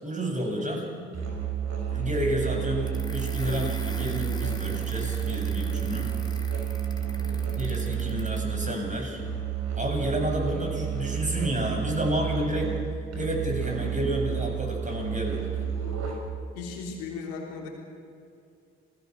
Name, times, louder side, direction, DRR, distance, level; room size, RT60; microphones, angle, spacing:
voice 1, 0.0-0.9 1.9-6.1 7.6-9.2 9.7-12.7 13.1-15.5, equal, 25° right, 0 dB, 7.9 m, -30 dB
voice 2, 0.6-1.0 7.2-7.5 16.5-17.7, left 4 dB, 85° left, 0 dB, 3.3 m, -38 dB
Musical instrument, 1.1-16.5, right 9 dB, 60° right, 5.5 m, -31 dB
sound 1, 2.9-8.5, left 2 dB, 15° left, 3.3 m, -43 dB
28.5 x 20.0 x 6.4 m, 2.5 s
hypercardioid pair, 40°, 30 cm